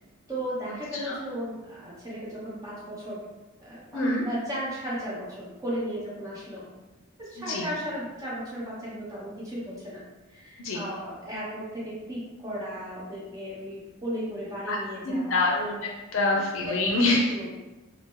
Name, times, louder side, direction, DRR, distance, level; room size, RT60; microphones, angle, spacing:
voice 1, 0.3-3.2 3.6-6.6 7.2-10.0 10.3-15.5 17.1-17.5, equal, 15° right, -7 dB, 0.8 m, -35 dB
voice 2, 3.9-4.2 7.4-7.7 10.6-10.8 14.7-14.8 15.0-17.3, left 2 dB, 65° left, -1 dB, 0.5 m, -26 dB
2.8 x 2.0 x 3.5 m, 1.1 s
head